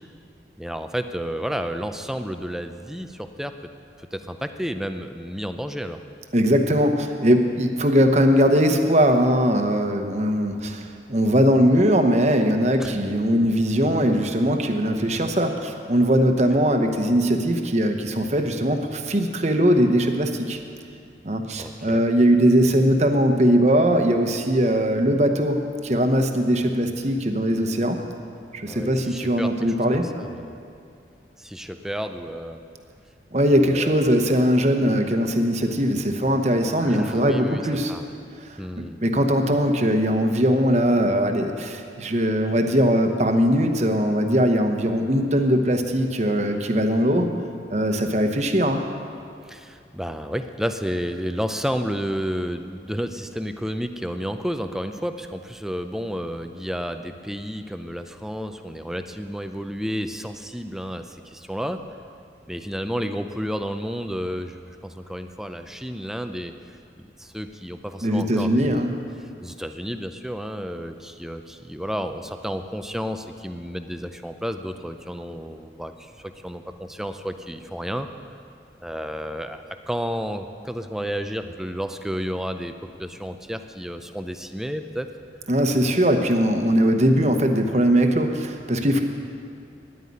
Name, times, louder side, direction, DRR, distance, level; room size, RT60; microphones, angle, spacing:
voice 1, 0.6-3.5 4.1-6.0 12.8-12.9 21.6-22.0 28.6-30.6 31.4-32.6 33.6-34.0 36.8-38.1 38.6-39.0 49.4-61.8 62.5-66.8 67.2-68.9 69.2-78.1 78.8-82.7 83.0-85.1, equal, 5° right, 8 dB, 0.4 m, -31 dB
voice 2, 6.3-20.6 21.2-28.0 28.5-30.1 33.3-37.9 38.4-47.3 47.7-48.8 68.0-69.0 85.5-89.0, equal, 40° right, 5 dB, 1.0 m, -20 dB
10.0 x 9.4 x 9.5 m, 2.4 s
head